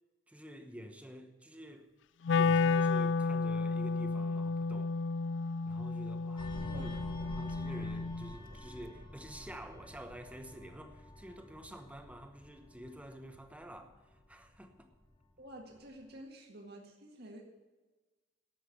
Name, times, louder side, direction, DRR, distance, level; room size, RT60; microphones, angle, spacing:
voice 1, 0.3-1.9 2.3-4.9 5.6-6.9 7.2-14.9, equal, 5° right, 1.0 m, -49 dB
Wind instrument woodwind instrument, 2.2-8.3, left 4 dB, 70° left, 0.4 m, -32 dB
sound 1, 6.4-15.4 15.8-16.0, left 1 dB, 25° left, 1.3 m, -48 dB
voice 2, 15.4-17.4, right 1 dB, 55° right, 1.9 m, -50 dB
11.5 x 7.9 x 8.0 m
head